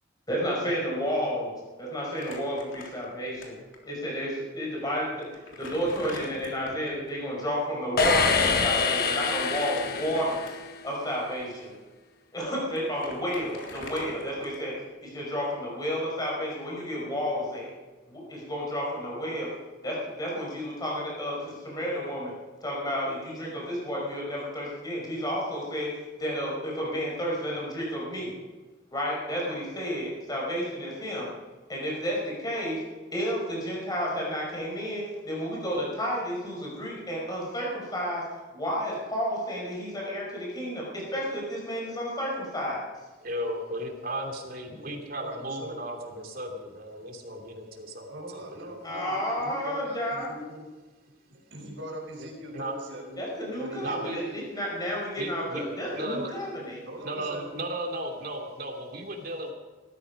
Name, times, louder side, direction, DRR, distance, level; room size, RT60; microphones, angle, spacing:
voice 1, 0.3-1.5 1.8-3.6 3.8-5.3 5.6-10.5 10.8-11.8 12.3-14.7 15.0-17.7 18.1-19.5 19.8-22.3 22.6-25.9 26.2-28.3 28.9-31.3 31.7-32.8 33.1-38.2 38.5-42.9 48.8-50.3 53.2-56.8, equal, 20° left, -3 dB, 5.5 m, -31 dB
Crumpling crinkling, 2.1-3.4 3.7-3.8 4.7-4.8 5.2-7.0 9.2-10.8 11.4-11.5 12.4-12.5 12.8-14.8, left 2 dB, 85° left, 3.5 m, -44 dB
sound 1, 8.0-10.8, left 5 dB, 50° left, 1.2 m, -26 dB
voice 2, 43.2-48.8 52.2-52.7 53.8-54.2 55.2-55.6 55.9-56.3 57.0-59.5, right 1 dB, 50° right, 2 dB, 2.9 m, -35 dB
voice 3, 44.8-45.8 48.1-50.6 51.5-53.2 53.6-54.5 55.5-55.6 56.0-56.3 56.8-57.4, right 1 dB, 70° right, -1 dB, 5.3 m, -41 dB
19.5 x 13.5 x 5.3 m, 1.3 s
head